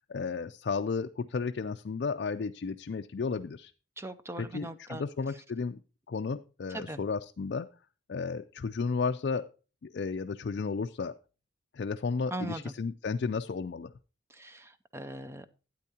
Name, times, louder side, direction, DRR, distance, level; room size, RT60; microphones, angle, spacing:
voice 1, 0.1-3.7 4.4-5.8 6.1-7.7 8.1-9.5 9.8-11.2 11.7-13.9, left 4 dB, 55° left, 6 dB, 0.4 m, -33 dB
voice 2, 4.0-5.0 6.7-7.0 12.3-12.7 14.3-15.5, right 2 dB, 15° right, 12 dB, 0.4 m, -40 dB
12.0 x 9.1 x 2.8 m, 0.34 s
head